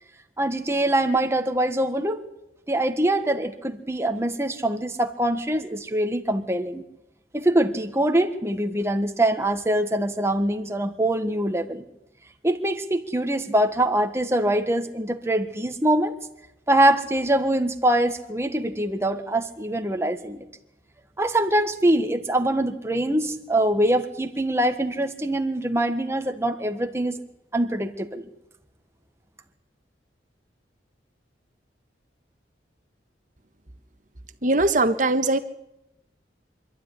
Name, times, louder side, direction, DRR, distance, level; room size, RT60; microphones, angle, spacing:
voice 1, 0.4-2.2 2.7-6.8 7.3-11.8 12.4-16.1 16.7-20.5 21.2-27.2 27.5-28.2, right 1 dB, 15° right, 6 dB, 1.4 m, -23 dB
voice 2, 34.4-35.4, right 2 dB, 45° right, 8 dB, 1.4 m, -20 dB
25.5 x 12.5 x 9.8 m, 0.89 s
head